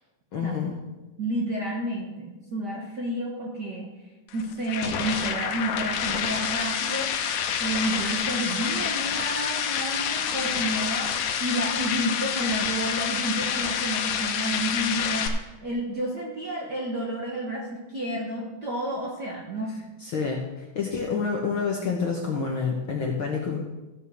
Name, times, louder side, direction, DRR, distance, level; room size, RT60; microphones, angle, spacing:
voice 1, 0.3-0.7 20.0-23.6, left 5 dB, 60° left, -1 dB, 1.4 m, -28 dB
voice 2, 1.2-3.9 4.3-7.1 7.6-19.9, right 1 dB, 50° right, -2 dB, 1.3 m, -30 dB
sound 1, 4.3-15.3, left 8 dB, 90° left, 2.4 m, -28 dB
14.5 x 5.4 x 6.3 m, 1.1 s
omnidirectional pair, 3.6 m